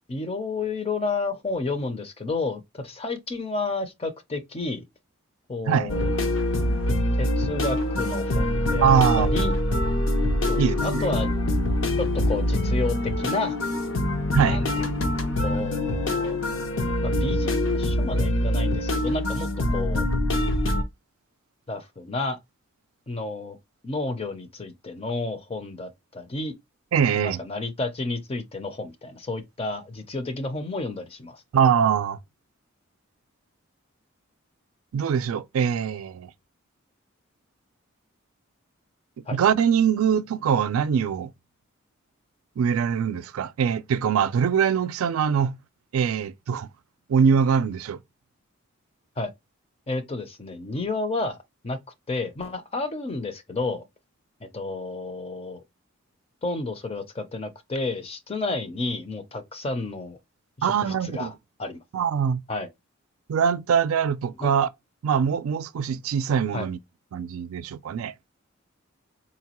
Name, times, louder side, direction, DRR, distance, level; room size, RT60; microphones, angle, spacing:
voice 1, 0.1-4.9 5.5-6.1 7.2-8.9 9.2-9.5 10.5-11.3 12.0-13.6 14.4-14.9 15.4-16.4 17.0-20.1 21.7-22.4 23.1-23.6 23.8-26.5 27.2-31.4 39.3-39.4 49.2-49.3 49.9-51.4 51.6-51.8 52.1-53.8 54.4-55.6 56.4-60.2 60.6-61.3 61.6-61.8 62.5-62.7 64.4-64.5 66.5-66.7, left 3 dB, 30° left, 0.5 m, -31 dB
sound 1, 5.9-20.8, left 1 dB, 70° left, 0.7 m, -24 dB
voice 2, 8.8-9.5 10.6-11.1 14.3-14.6 26.9-27.4 31.5-32.2 34.9-36.3 39.3-41.3 42.6-45.6 45.9-46.7 47.1-48.0 60.6-61.3 61.9-62.4 63.3-64.7 65.0-66.8 67.1-68.1, right 7 dB, 90° right, 0.4 m, -23 dB
4.0 x 2.2 x 2.9 m
head